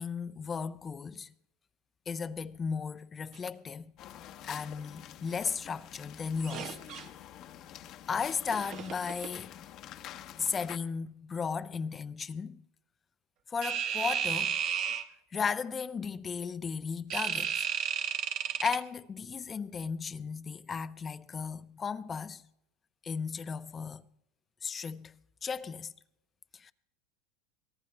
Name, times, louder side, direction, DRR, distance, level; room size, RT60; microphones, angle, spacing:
voice 1, 0.0-1.3 2.1-3.9 4.4-6.8 8.1-9.5 10.4-12.6 13.5-14.6 15.3-17.7 18.6-22.4 23.0-24.0 24.6-25.1 25.4-25.9 26.5-26.7, left 6 dB, 20° left, 0.5 m, -35 dB
sound 1, 4.0-10.8, left 11 dB, 45° left, 0.9 m, -48 dB
sound 2, 6.4-7.1 8.5-9.3 13.6-15.0 17.1-18.8, right 8 dB, 50° right, 1.3 m, -33 dB
24.0 x 18.0 x 2.2 m
supercardioid pair, 130°, 0 cm